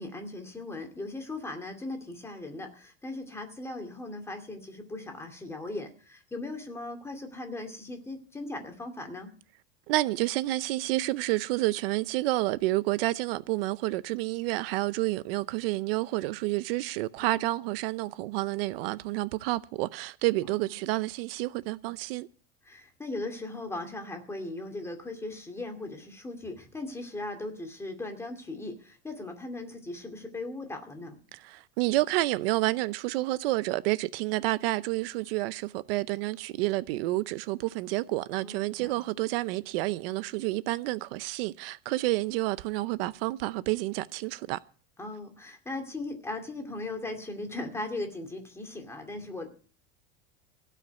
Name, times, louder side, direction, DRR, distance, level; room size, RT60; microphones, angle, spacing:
voice 1, 0.0-9.3 17.2-17.4 20.4-20.6 22.6-31.2 38.3-38.9 45.0-49.5, left 2 dB, 10° left, 2.4 m, -38 dB
voice 2, 9.9-22.3 31.3-44.6, right 19 dB, 65° right, 0.7 m, -29 dB
17.0 x 5.8 x 9.4 m
supercardioid pair, 150°, 31 cm